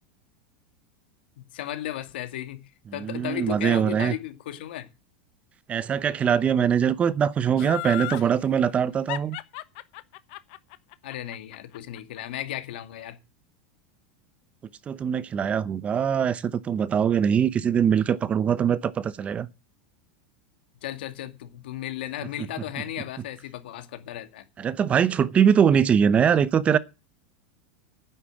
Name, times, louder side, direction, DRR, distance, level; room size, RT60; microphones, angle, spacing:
voice 1, 1.4-4.9 11.0-13.2 20.8-24.5, left 13 dB, 80° left, 2.2 m, -35 dB
voice 2, 3.0-4.1 5.7-9.4 14.9-19.5 24.6-26.8, right 8 dB, 25° right, 0.7 m, -22 dB
Laughter, 7.6-8.3 9.1-12.2 12.5-12.6, left 20 dB, 60° left, 1.0 m, -34 dB
10.0 x 8.5 x 7.7 m
supercardioid pair, 135°, 5 cm